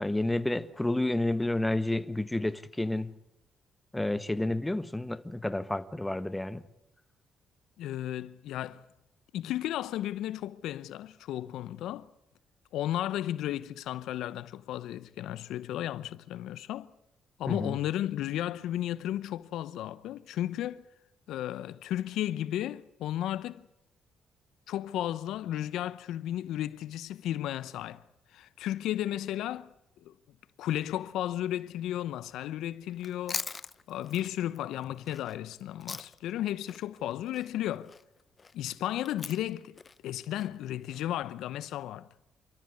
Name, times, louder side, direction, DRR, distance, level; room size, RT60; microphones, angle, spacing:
voice 1, 0.0-3.1 3.9-6.6 17.5-17.8, left 1 dB, 10° left, 1.4 m, -30 dB
voice 2, 7.8-8.8 9.3-12.1 12.7-16.9 17.4-20.8 21.3-23.7 24.7-28.0 28.3-29.7 30.0-30.1 30.6-33.5 33.9-37.9 38.5-39.8 40.0-42.1, left 12 dB, 85° left, 0.8 m, -34 dB
Chewing mastication, 32.9-36.4 36.7-41.0, left 4 dB, 35° left, 0.8 m, -42 dB
28.0 x 14.0 x 9.6 m
cardioid pair, 90°, 0 cm